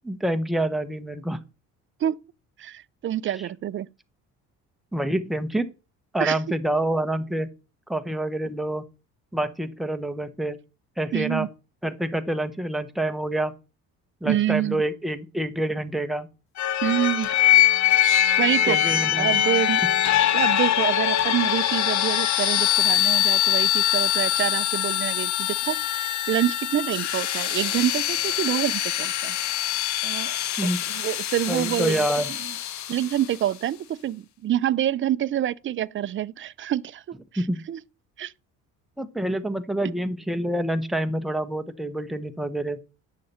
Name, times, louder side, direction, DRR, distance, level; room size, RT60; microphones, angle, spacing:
voice 1, 0.0-1.4 4.9-5.7 6.1-7.5 7.9-8.8 9.3-10.6 11.0-11.5 11.8-13.5 14.2-16.3 18.7-19.4 30.6-30.8 31.5-32.3 37.4-37.6 39.0-42.8, right 1 dB, ahead, 0.9 m, -27 dB
voice 2, 2.6-3.9 6.2-6.4 11.1-11.5 14.2-14.8 16.8-17.3 18.4-18.8 19.1-19.8 20.3-29.4 30.0-30.4 30.9-32.1 32.4-32.5 32.9-37.8 38.2-38.3, right 11 dB, 40° right, 0.5 m, -27 dB
sound 1, 16.6-33.3, left 12 dB, 55° left, 0.9 m, -23 dB
9.7 x 6.6 x 4.3 m
cardioid pair, 100°, 33 cm